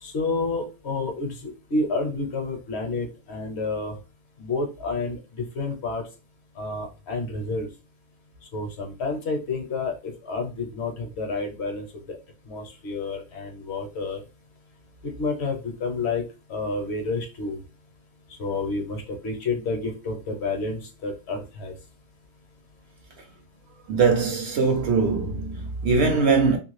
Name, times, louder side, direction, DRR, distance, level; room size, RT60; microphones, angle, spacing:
voice 1, 0.0-3.9 4.4-5.2 5.5-6.1 6.6-7.7 8.5-12.2 12.5-14.2 15.0-16.2 16.5-17.6 18.4-21.7, left 3 dB, 60° left, 0.8 m, -29 dB
voice 2, 23.9-26.6, right 4 dB, 65° right, 0.8 m, -21 dB
2.9 x 2.5 x 3.1 m
omnidirectional pair, 1.4 m